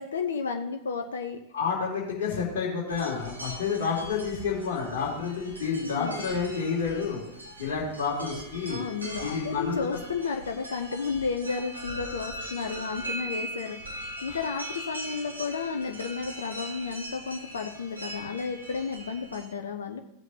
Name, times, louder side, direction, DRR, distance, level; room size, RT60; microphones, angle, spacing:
voice 1, 0.0-1.4 5.8-6.2 8.7-20.0, left 5 dB, 65° left, 5 dB, 0.7 m, -32 dB
voice 2, 1.5-7.2 7.6-8.8 9.2-9.7, left 5 dB, 50° left, -6 dB, 2.7 m, -29 dB
sound 1, 2.9-19.4, right 1 dB, 80° right, 4.3 m, -40 dB
16.5 x 8.0 x 2.9 m, 0.80 s
figure-of-eight pair, 90°, 0 cm